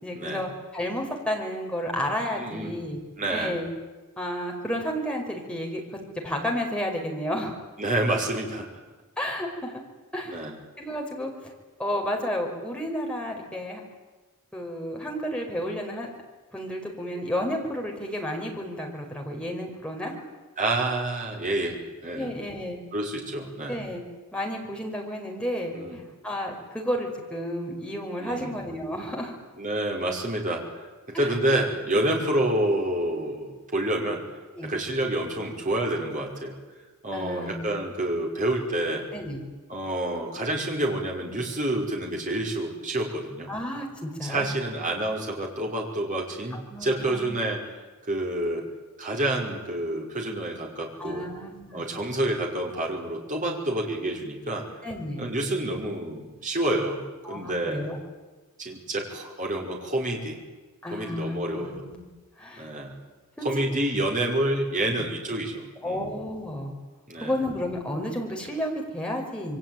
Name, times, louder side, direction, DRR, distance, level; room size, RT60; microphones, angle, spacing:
voice 1, 0.0-3.0 3.3-3.7 4.2-7.6 9.2-9.8 10.1-10.5 10.8-11.5 11.8-13.8 14.5-16.1 16.5-20.1 22.1-22.8 23.7-24.0 24.3-29.4 31.1-31.4 34.6-34.7 37.1-37.8 39.1-39.4 43.5-44.5 46.7-47.4 51.0-51.9 54.8-55.2 57.2-58.0 60.8-62.0 62.4-62.7 63.4-63.5 64.9-65.1 65.8-66.7 67.2-69.6, equal, 5° left, 0 dB, 5.2 m, -32 dB
voice 2, 2.3-2.7 3.2-3.6 7.8-8.7 10.3-10.6 20.6-22.3 22.9-23.8 25.7-26.0 28.2-28.6 29.6-30.6 31.1-34.2 34.6-36.6 37.0-39.0 39.7-43.5 44.2-47.6 48.1-48.6 49.0-51.3 51.7-54.6 55.2-57.9 58.6-60.4 60.9-61.8 62.6-62.9 63.4-66.1 67.1-67.3, right 1 dB, 35° right, 0 dB, 5.4 m, -28 dB
27.5 x 23.0 x 9.4 m, 1.2 s
head